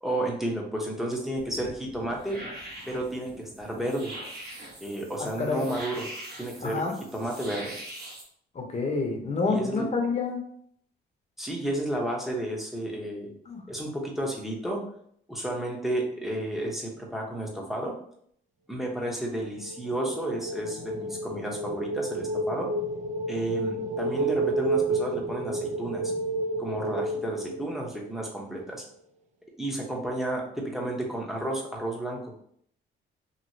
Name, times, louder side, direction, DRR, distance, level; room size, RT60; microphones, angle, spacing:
voice 1, 0.0-2.4 2.9-4.1 4.8-6.1 6.4-6.8 7.1-7.8 9.5-9.9 11.4-13.3 13.7-14.8 15.3-17.9 18.7-22.7 23.3-26.1 26.6-28.8 29.6-32.3, right 1 dB, ahead, -2 dB, 0.8 m, -32 dB
sound 1, 1.4-8.2, right 1 dB, 55° right, 1.2 m, -43 dB
voice 2, 6.6-6.9 8.5-10.4 13.5-13.6, left 4 dB, 35° left, 1 dB, 0.8 m, -28 dB
sound 2, 19.3-28.2, right 2 dB, 35° right, 0.4 m, -31 dB
3.0 x 2.6 x 2.7 m, 0.66 s
cardioid pair, 90°, 20 cm